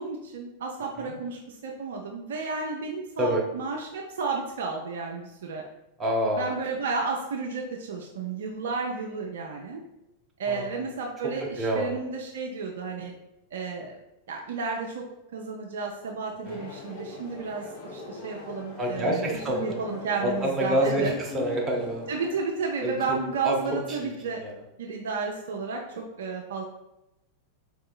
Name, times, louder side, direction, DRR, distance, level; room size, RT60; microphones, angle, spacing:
voice 1, 0.0-5.6 6.4-9.8 10.4-13.1 13.5-14.0 14.3-15.0 15.3-21.1 22.1-24.4 24.8-26.6, right 4 dB, 60° right, 0 dB, 0.4 m, -32 dB
voice 2, 6.0-6.6 10.5-10.7 11.6-12.0 16.5-16.6 18.8-19.8 20.2-22.1 22.8-23.2 23.4-24.1 24.4-24.5, right 1 dB, 20° right, -1 dB, 0.8 m, -27 dB
sound 1, 16.4-22.3, left 3 dB, 50° left, 0.8 m, -41 dB
4.4 x 2.8 x 2.3 m, 0.91 s
figure-of-eight pair, 90°, 0 cm